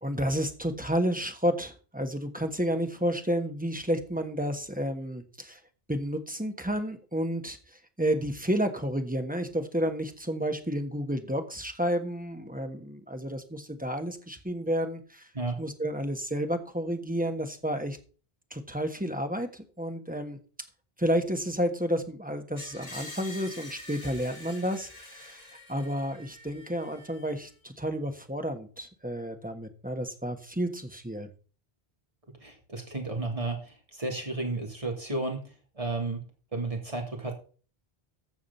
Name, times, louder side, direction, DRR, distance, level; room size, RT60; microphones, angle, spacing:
voice 1, 0.0-5.6 5.9-7.6 8.0-15.3 15.6-18.0 18.5-20.4 21.0-31.3, equal, 10° right, 6 dB, 1.3 m, -31 dB
Screech, 22.6-27.5, left 1 dB, 40° left, 2.4 m, -46 dB
voice 2, 32.4-36.2 36.5-37.3, right 2 dB, 35° right, 2 dB, 2.8 m, -33 dB
14.5 x 4.9 x 5.6 m, 0.38 s
omnidirectional pair, 1.0 m